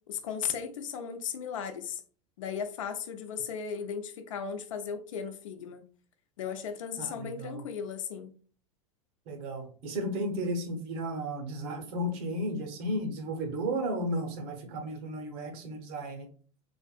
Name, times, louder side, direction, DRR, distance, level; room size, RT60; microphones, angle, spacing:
voice 1, 0.1-2.0 2.4-5.8 6.4-8.3, left 7 dB, 75° left, 0.5 m, -36 dB
voice 2, 7.0-7.6 9.3-16.3, right 1 dB, 55° right, 0.9 m, -34 dB
3.3 x 2.5 x 2.3 m
hypercardioid pair, 90°, 17 cm